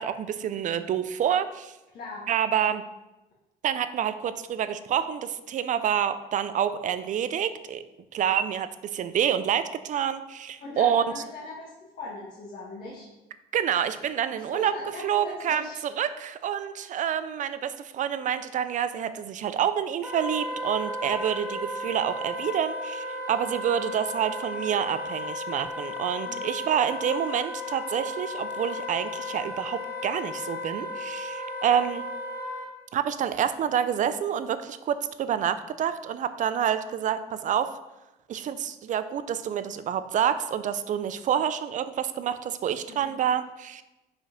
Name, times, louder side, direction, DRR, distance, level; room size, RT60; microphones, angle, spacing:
voice 1, 0.0-1.7 2.3-2.8 3.6-7.8 8.1-11.2 13.5-14.7 15.0-32.0 32.9-37.7 38.3-43.8, right 9 dB, 50° right, 12 dB, 0.5 m, -28 dB
voice 2, 1.9-2.2 10.6-13.1 14.3-15.8 26.3-26.6 42.9-43.1, left 3 dB, 55° left, -5 dB, 1.7 m, -40 dB
Wind instrument woodwind instrument, 20.0-32.7, left 2 dB, 10° right, 1.8 m, -34 dB
5.1 x 5.0 x 5.1 m, 1.0 s
cardioid pair, 110°, 17 cm